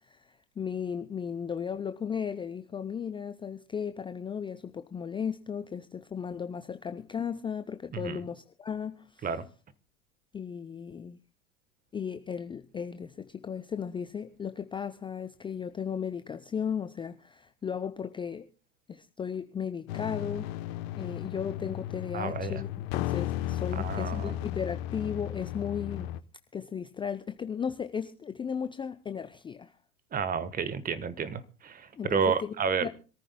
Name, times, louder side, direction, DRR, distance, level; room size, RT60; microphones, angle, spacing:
voice 1, 0.6-9.3 10.3-11.2 11.9-18.5 18.9-20.5 21.0-26.1 26.5-29.7 31.9-32.5 32.8-32.9, left 7 dB, 10° left, 0.6 m, -35 dB
sound 1, 19.9-26.2, left 13 dB, 50° left, 1.0 m, -34 dB
voice 2, 22.1-22.6 23.7-24.4 30.1-32.9, right 6 dB, 20° right, 1.2 m, -31 dB
26.5 x 14.0 x 2.2 m
hypercardioid pair, 95°, 42 cm